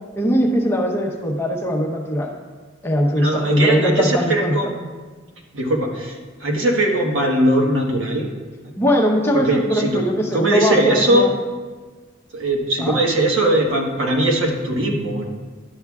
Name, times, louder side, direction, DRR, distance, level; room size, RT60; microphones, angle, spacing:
voice 1, 0.2-2.3 2.8-4.6 8.8-11.3 12.8-13.0, equal, 15° left, 0 dB, 0.8 m, -20 dB
voice 2, 3.2-4.8 5.5-6.1 6.4-8.3 9.3-10.0 10.3-11.3 12.3-15.2, right 1 dB, 80° right, 0 dB, 1.4 m, -20 dB
12.0 x 7.8 x 2.4 m, 1.4 s
head